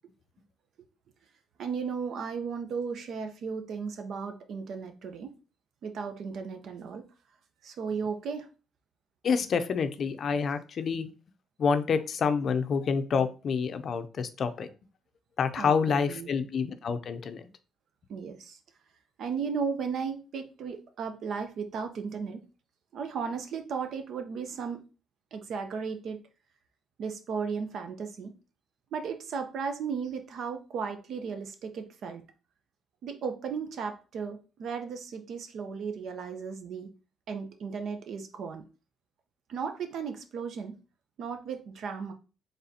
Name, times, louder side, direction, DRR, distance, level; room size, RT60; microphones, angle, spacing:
voice 1, 1.6-5.3 5.8-7.1 7.6-8.5 15.6-16.3 18.1-18.6 19.2-22.4 22.9-24.9 25.3-26.2 27.0-28.3 28.9-32.2 33.0-36.9 37.3-38.6 39.5-40.8 41.2-42.1, right 6 dB, 70° right, 7 dB, 0.6 m, -35 dB
voice 2, 9.2-11.1 11.6-14.7 15.4-17.4, left 6 dB, 55° left, 10 dB, 0.5 m, -28 dB
4.0 x 3.5 x 2.7 m, 0.34 s
cardioid pair, 90°, 0 cm